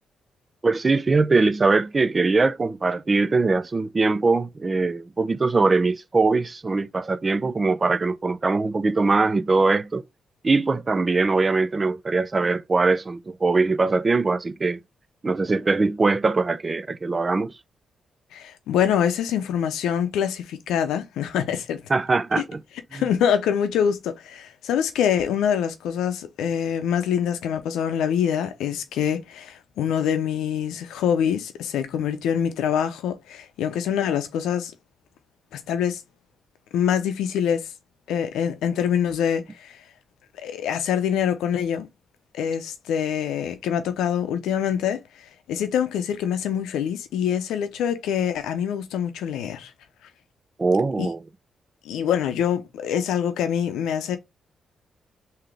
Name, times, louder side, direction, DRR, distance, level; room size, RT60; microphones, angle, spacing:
voice 1, 0.6-10.0 10.4-14.8 15.2-17.5 21.9-22.6 22.9-23.0 50.6-51.2, right 3 dB, 35° right, 0.4 m, -22 dB
voice 2, 18.3-21.8 22.4-22.5 22.9-34.7 35.5-36.0 36.7-37.7 38.1-39.8 40.4-41.9 42.3-45.0 45.5-49.7 51.0-51.1 51.8-54.2, left 8 dB, 85° left, 0.6 m, -25 dB
3.7 x 2.8 x 3.3 m
cardioid pair, 65°, 0 cm